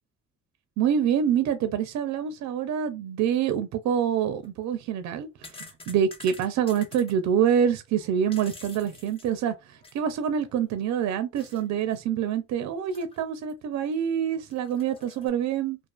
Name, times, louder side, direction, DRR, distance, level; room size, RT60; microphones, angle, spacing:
voice 1, 0.8-5.3 5.6-9.5 9.9-15.8, right 8 dB, 65° right, 0.4 m, -26 dB
sound 1, 4.3-4.5 5.1-7.1 8.0-10.1 10.5-10.6 11.4-11.6 11.9-12.0 12.9-13.5 13.9-14.0 14.5-15.3, left 3 dB, 20° left, 0.6 m, -48 dB
2.4 x 2.4 x 2.3 m
cardioid pair, 90°, 30 cm